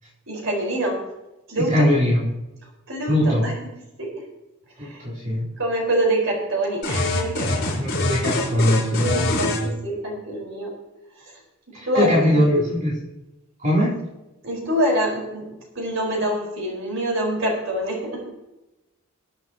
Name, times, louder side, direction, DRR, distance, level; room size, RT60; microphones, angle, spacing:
voice 1, 0.3-1.0 1.5-1.8 2.9-3.2 3.4-3.5 4.0-4.1 4.8-5.0 5.6-7.7 9.0-10.7 11.2-11.4 11.9-12.6 14.4-15.5 15.7-18.2, right 1 dB, 65° right, -1 dB, 4.7 m, -25 dB
voice 2, 1.6-2.2 3.1-3.5 4.8-5.5 7.8-9.5 11.7-13.0 13.6-14.0, left 1 dB, 35° right, -7 dB, 4.0 m, -21 dB
sound 1, 6.8-9.6, left 2 dB, 55° left, 4.8 m, -24 dB
23.0 x 9.0 x 3.0 m, 0.98 s
head